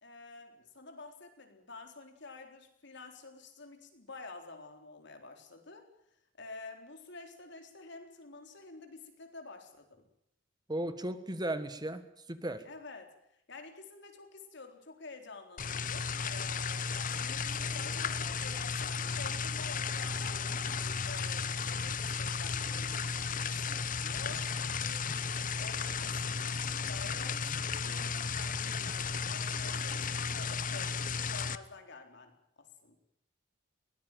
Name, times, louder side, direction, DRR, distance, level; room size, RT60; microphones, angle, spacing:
voice 1, 0.0-5.9 6.4-10.0 12.6-20.5 21.0-25.1 25.6-33.0, left 3 dB, 65° left, 5 dB, 3.9 m, -50 dB
voice 2, 10.7-12.0 12.3-12.6, right 1 dB, 20° right, 11 dB, 1.6 m, -35 dB
sound 1, 15.6-31.6, left 5 dB, 45° left, 0.9 m, -34 dB
22.5 x 18.5 x 9.2 m, 0.76 s
head